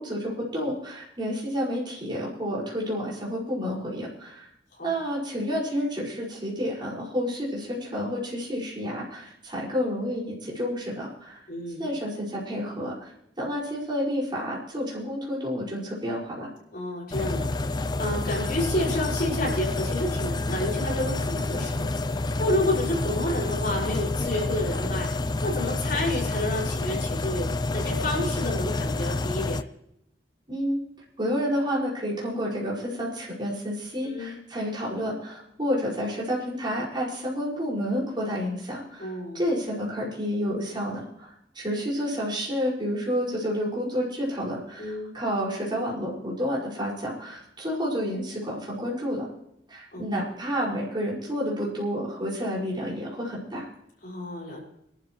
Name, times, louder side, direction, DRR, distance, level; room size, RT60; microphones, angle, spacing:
voice 1, 0.0-4.5 4.8-11.4 11.8-13.1 13.4-16.5 30.5-30.8 31.2-49.3 49.7-53.7, equal, 25° right, -6 dB, 5.5 m, -30 dB
voice 2, 11.5-11.9 16.7-25.1 25.4-29.6 34.0-34.4 39.0-39.4 44.8-45.2 49.9-50.1 54.0-54.6, left 1 dB, 55° left, -3 dB, 5.8 m, -30 dB
sound 1, 17.1-29.6, left 2 dB, 25° left, 0.4 m, -28 dB
25.0 x 12.5 x 3.1 m, 0.76 s
head